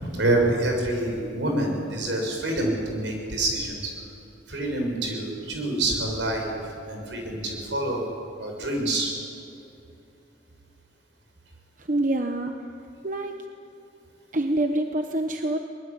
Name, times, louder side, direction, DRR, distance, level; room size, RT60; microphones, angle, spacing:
voice 1, 0.0-3.9 4.5-8.0 8.4-9.1, right 1 dB, 80° right, 2 dB, 6.5 m, -27 dB
voice 2, 11.9-12.5 13.0-13.5 14.3-15.6, right 1 dB, 45° right, 5 dB, 1.0 m, -26 dB
23.0 x 21.0 x 8.6 m, 2.7 s
head